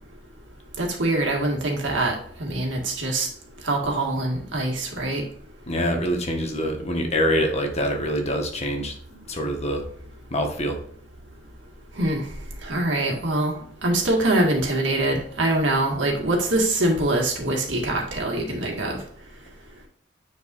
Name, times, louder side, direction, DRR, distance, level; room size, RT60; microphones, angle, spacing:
voice 1, 0.8-3.3 3.6-5.2 12.0-12.2 12.6-13.5 13.8-19.0, right 1 dB, 75° right, 0 dB, 2.0 m, -24 dB
voice 2, 5.7-9.8 10.3-10.8, equal, 35° left, 2 dB, 1.4 m, -25 dB
9.4 x 4.6 x 2.6 m, 0.62 s
head